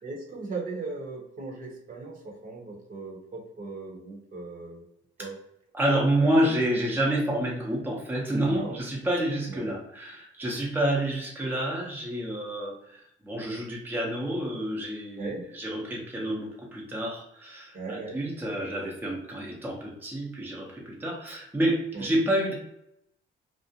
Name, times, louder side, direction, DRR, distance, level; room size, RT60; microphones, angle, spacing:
voice 1, 0.0-4.8 5.2-5.3 8.5-8.8 9.5-9.8 15.2-15.4 17.7-18.2 21.9-22.1, right 3 dB, 45° right, -1 dB, 0.8 m, -38 dB
voice 2, 5.7-22.5, right 1 dB, 10° right, -3 dB, 0.6 m, -28 dB
2.4 x 2.0 x 2.7 m, 0.79 s
cardioid pair, 90°, 20 cm